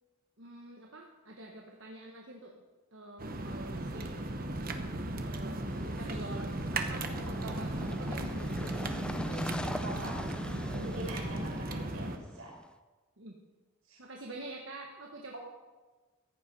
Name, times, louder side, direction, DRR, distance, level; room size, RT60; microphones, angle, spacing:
voice 1, 0.4-2.5 2.9-4.5 5.1-9.5 13.2-13.3 14.0-15.4, right 2 dB, 55° right, 1 dB, 1.3 m, -47 dB
sound 1, 3.2-12.2, right 1 dB, 40° right, 1.0 m, -36 dB
sound 2, 5.7-12.7, left 1 dB, 5° left, 0.3 m, -42 dB
voice 2, 9.6-10.2 10.7-12.5 13.9-14.0 15.3-15.4, right 2 dB, 75° right, -2 dB, 5.0 m, -44 dB
15.0 x 10.5 x 5.4 m, 1.3 s
head